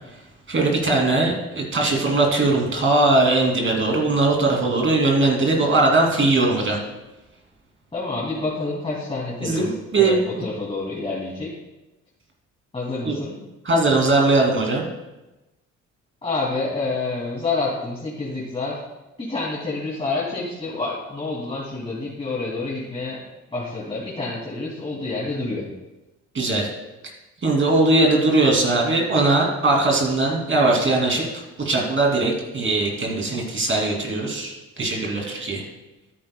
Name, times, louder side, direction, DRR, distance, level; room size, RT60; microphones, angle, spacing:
voice 1, 0.5-6.8 9.4-10.4 13.0-13.2 13.6-14.8 26.3-26.7 27.4-35.6, right 2 dB, 40° right, -1 dB, 2.8 m, -20 dB
voice 2, 7.9-11.5 12.7-13.4 16.2-18.8 19.2-23.2 23.5-25.7, left 3 dB, 20° left, -6 dB, 2.6 m, -28 dB
13.5 x 9.3 x 2.3 m, 1.0 s
cardioid pair, 90°, 30 cm